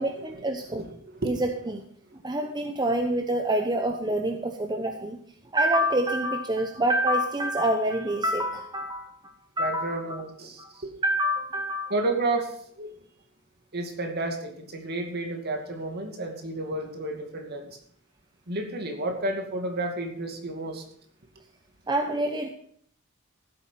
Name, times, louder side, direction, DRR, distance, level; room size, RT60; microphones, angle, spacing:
voice 1, 0.0-0.8 1.2-1.9 2.2-5.2 5.5-10.0 10.6-10.7 11.0-11.9 21.9-22.5, right 1 dB, 20° right, 4 dB, 0.9 m, -27 dB
voice 2, 0.7-1.3 9.6-10.9 11.9-12.9 13.7-17.8 18.5-20.8, right 2 dB, 50° right, 3 dB, 2.5 m, -31 dB
15.0 x 8.4 x 5.8 m, 0.62 s
head